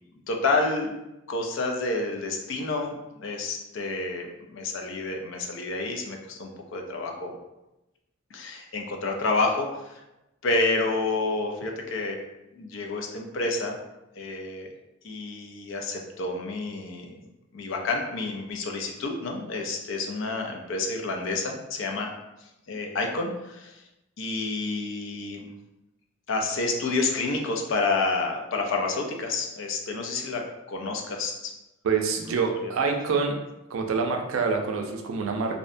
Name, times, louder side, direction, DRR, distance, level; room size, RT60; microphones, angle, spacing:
voice 1, 0.3-0.9 1.3-7.3 8.3-10.0 10.4-12.2 12.6-13.8 14.2-14.7 15.0-17.1 17.5-22.1 22.7-23.8 24.2-25.5 26.3-31.5 32.6-32.8, left 3 dB, 65° left, 2 dB, 0.4 m, -29 dB
voice 2, 31.8-33.4 33.7-35.6, right 5 dB, 85° right, 3 dB, 0.4 m, -26 dB
2.7 x 2.1 x 2.5 m, 0.95 s
head